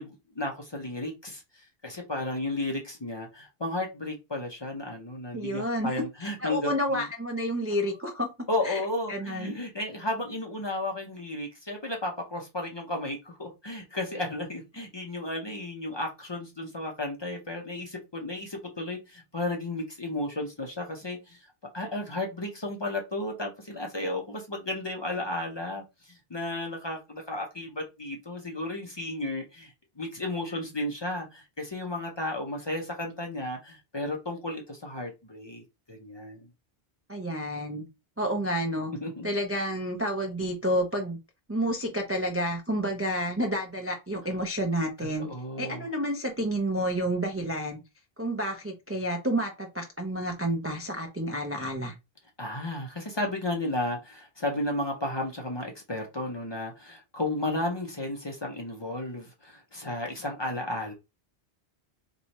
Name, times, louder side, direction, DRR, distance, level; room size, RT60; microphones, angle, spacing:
voice 1, 0.0-7.1 8.5-21.4 21.7-36.5 39.0-39.3 45.2-45.8 52.4-60.9, left 1 dB, 30° left, 0.6 m, -33 dB
voice 2, 5.3-5.9 6.4-8.8 9.1-9.5 37.1-37.9 38.2-38.9 39.2-41.2 41.5-45.3 45.6-47.8 48.2-51.9, equal, 20° right, 0.4 m, -30 dB
3.0 x 2.3 x 4.0 m
omnidirectional pair, 1.0 m